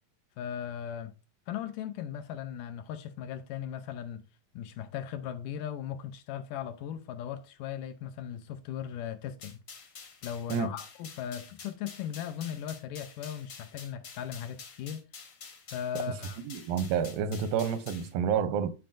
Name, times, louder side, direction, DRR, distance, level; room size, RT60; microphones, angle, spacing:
voice 1, 0.4-1.2 1.5-4.2 4.5-9.6 10.2-15.0 15.7-16.4, left 9 dB, 80° left, 2.1 m, -38 dB
sound 1, 9.4-18.1, left 5 dB, 55° left, 1.2 m, -48 dB
voice 2, 16.4-18.7, right 7 dB, 85° right, 2.4 m, -29 dB
11.5 x 4.4 x 2.5 m
omnidirectional pair, 4.0 m